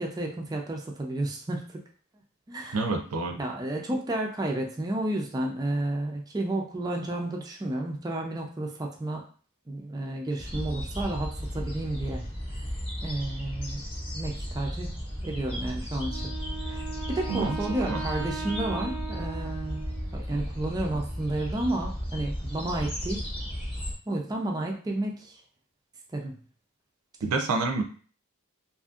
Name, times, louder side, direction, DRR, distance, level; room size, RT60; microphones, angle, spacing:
voice 1, 0.0-1.8 2.5-2.8 3.4-9.2 9.7-12.2 13.0-13.8 14.1-16.3 16.6-16.8 17.1-19.9 20.1-23.2 24.1-25.4 26.1-26.3, right 1 dB, 15° right, 0 dB, 0.4 m, -31 dB
voice 2, 2.7-3.4 17.3-17.6 17.9-18.0 27.2-27.8, right 3 dB, 90° right, 4 dB, 0.5 m, -27 dB
sound 1, 10.4-23.9, equal, 25° left, 0.8 m, -35 dB
Wind instrument woodwind instrument, 16.0-20.2, right 5 dB, 65° left, 0.8 m, -39 dB
2.7 x 2.5 x 2.4 m, 0.41 s
head